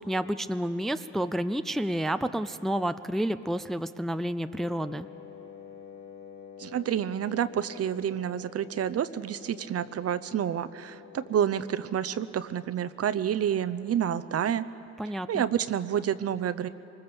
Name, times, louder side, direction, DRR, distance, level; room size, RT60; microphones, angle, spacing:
voice 1, 0.1-5.1 15.0-15.4, right 1 dB, ahead, 11 dB, 0.5 m, -30 dB
Wind instrument woodwind instrument, 4.6-12.2, left 8 dB, 70° left, 2.1 m, -48 dB
voice 2, 6.6-14.6 15.3-16.7, right 9 dB, 50° right, 14 dB, 0.7 m, -29 dB
24.0 x 20.0 x 7.1 m, 2.9 s
cardioid pair, 90°, 30 cm